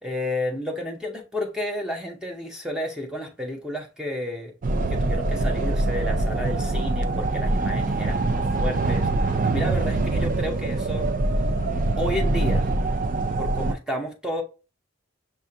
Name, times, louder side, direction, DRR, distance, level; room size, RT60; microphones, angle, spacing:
voice 1, 0.0-4.5 4.9-9.1 9.4-11.1 12.0-12.7 13.4-14.4, left 1 dB, 5° right, 0.6 m, -31 dB
sound 1, 4.6-13.7, right 2 dB, 40° right, 0.4 m, -24 dB
6.5 x 2.4 x 2.7 m
head